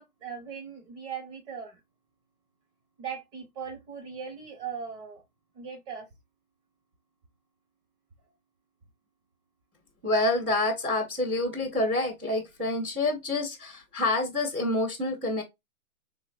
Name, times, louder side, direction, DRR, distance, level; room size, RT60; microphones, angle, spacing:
voice 1, 0.0-1.8 3.0-5.2 5.5-6.1, right 6 dB, 30° right, 1.1 m, -39 dB
voice 2, 10.0-15.4, left 2 dB, 10° right, 0.3 m, -27 dB
4.0 x 3.0 x 2.4 m
figure-of-eight pair, 130°, 44 cm